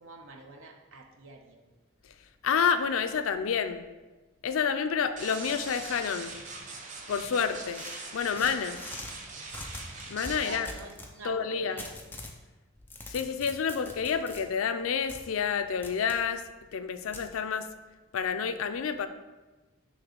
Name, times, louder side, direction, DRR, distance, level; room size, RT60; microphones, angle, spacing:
voice 1, 0.0-1.6 10.4-11.9, right 2 dB, 80° right, 2 dB, 0.9 m, -46 dB
voice 2, 2.4-3.9 4.4-6.3 7.1-7.8 8.1-8.8 10.1-10.7 11.2-11.8 13.1-17.7 18.1-19.1, left 6 dB, 85° left, 10 dB, 0.4 m, -29 dB
sound 1, 5.2-10.6, right 3 dB, 35° right, 0.6 m, -42 dB
sound 2, 7.7-9.1 9.5-11.1 11.8-12.4 12.8-14.4 15.1-15.2 15.8-16.2 17.1-17.3, left 2 dB, 10° left, 0.5 m, -43 dB
6.4 x 3.1 x 5.1 m, 1.2 s
head